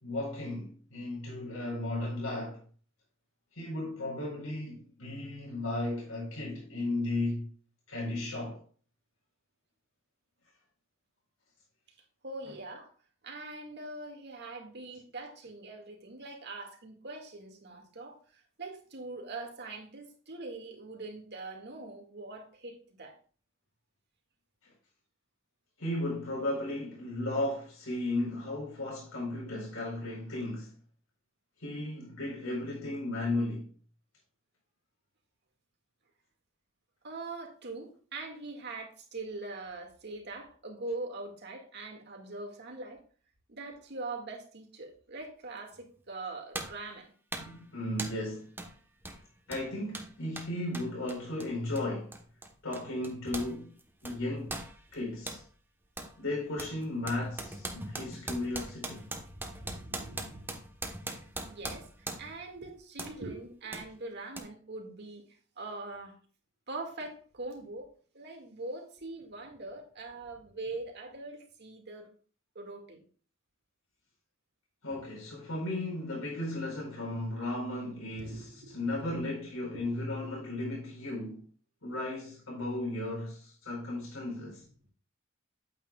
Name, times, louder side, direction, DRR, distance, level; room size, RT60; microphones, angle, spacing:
voice 1, 0.0-2.6 3.5-7.5 7.9-8.6 24.6-24.7 25.8-30.7 31.6-33.7 47.4-48.5 49.5-52.2 52.6-53.7 54.0-54.6 54.9-55.4 56.2-59.1 74.8-81.4 81.8-84.6, left 2 dB, 85° left, 4.5 m, -35 dB
voice 2, 12.2-12.9 13.2-23.2 37.0-43.0 43.5-47.1 57.4-57.5 59.2-60.5 61.5-66.1 66.7-67.9 68.1-72.1 72.5-73.0 78.2-79.2 79.7-79.8 80.1-80.3, right 2 dB, 55° right, 2.2 m, -42 dB
sound 1, 45.7-45.8 46.5-46.9 47.3-47.6 48.0-48.3 48.6-48.7 49.0-53.5 53.8-55.4 56.0-56.2 56.6-62.4 63.0-63.2 63.7-63.9 64.4-64.5, right 2 dB, 10° right, 1.2 m, -41 dB
8.9 x 8.9 x 2.4 m
head